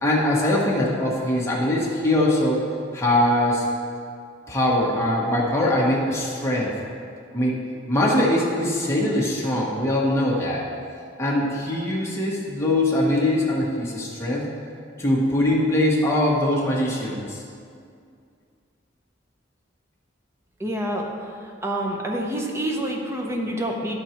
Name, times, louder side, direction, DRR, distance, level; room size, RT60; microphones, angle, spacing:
voice 1, 0.0-2.6 2.9-3.6 4.5-6.7 7.3-7.6 7.9-10.7 11.2-14.5 15.0-17.4, left 1 dB, 15° left, -4 dB, 1.4 m, -22 dB
voice 2, 20.6-21.0 21.6-24.0, right 1 dB, 15° right, 0 dB, 0.9 m, -27 dB
11.5 x 4.5 x 4.5 m, 2.3 s
head